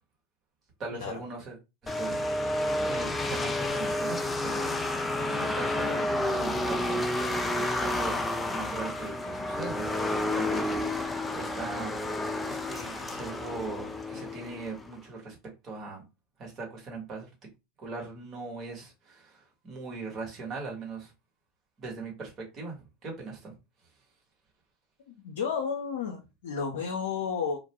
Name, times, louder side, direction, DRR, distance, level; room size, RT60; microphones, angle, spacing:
voice 1, 0.8-1.6 1.8-4.7 5.1-8.1 8.5-11.9 12.5-15.4 15.6-16.0 16.4-17.3 17.8-21.1 21.8-23.6, right 3 dB, 40° right, 1.3 m, -40 dB
sound 1, 1.9-14.9, left 1 dB, 15° left, 0.4 m, -30 dB
voice 2, 25.1-27.6, left 6 dB, 80° left, 0.5 m, -32 dB
2.4 x 2.1 x 2.9 m
hypercardioid pair, 95°, 0 cm